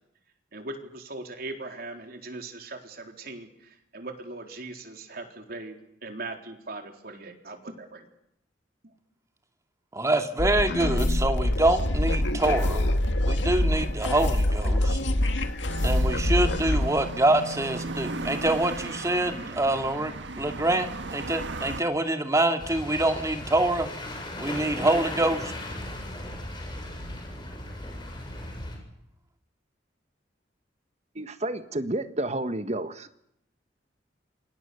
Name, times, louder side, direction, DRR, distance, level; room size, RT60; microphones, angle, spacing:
voice 1, 0.5-5.8 6.0-8.1 8.8-8.9, right 2 dB, 55° right, 4 dB, 3.9 m, -40 dB
voice 2, 9.9-13.0 13.2-15.0 15.8-23.9 24.4-25.5, right 1 dB, 15° right, 6 dB, 2.4 m, -25 dB
sound 1, 10.4-16.9, left 1 dB, 90° left, 2.1 m, -25 dB
sound 2, 15.7-21.8, right 3 dB, 85° right, 1.6 m, -36 dB
sound 3, 22.6-28.8, left 1 dB, 25° left, 7.3 m, -37 dB
voice 3, 31.1-33.1, right 1 dB, 40° right, 10 dB, 1.5 m, -30 dB
28.0 x 25.0 x 7.0 m, 0.79 s
head